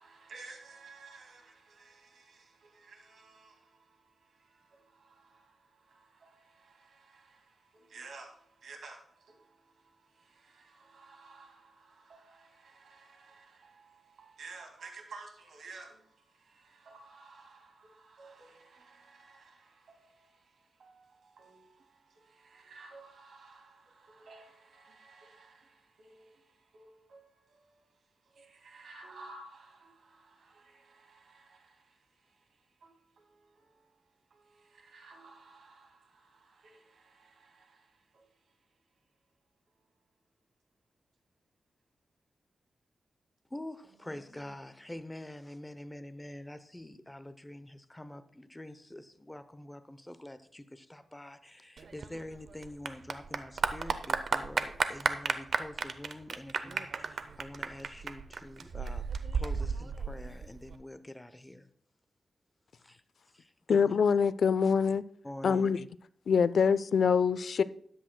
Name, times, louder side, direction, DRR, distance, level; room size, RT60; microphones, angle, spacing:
voice 1, 0.0-38.7 44.0-44.3, right 3 dB, 85° right, 2.1 m, -55 dB
voice 2, 43.5-61.7 62.8-63.0 63.3-64.0 65.2-65.7, left 1 dB, 10° left, 0.7 m, -46 dB
Clapping / Applause, 51.8-60.8, right 5 dB, 65° right, 0.6 m, -33 dB
voice 3, 63.7-65.0 65.4-65.8 66.3-67.6, left 6 dB, 70° left, 0.4 m, -25 dB
13.5 x 10.0 x 2.2 m
wide cardioid pair, 120°, 0 cm